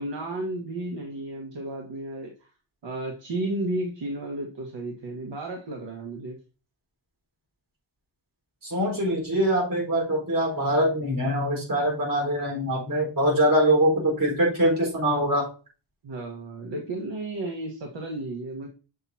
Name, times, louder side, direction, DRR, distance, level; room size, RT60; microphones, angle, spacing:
voice 1, 0.0-2.3 2.8-6.4 16.0-18.7, right 1 dB, 70° right, 0 dB, 1.4 m, -33 dB
voice 2, 8.6-15.5, right 1 dB, 45° right, -2 dB, 4.3 m, -23 dB
7.4 x 6.4 x 2.8 m, 0.34 s
wide cardioid pair, 165°, 46 cm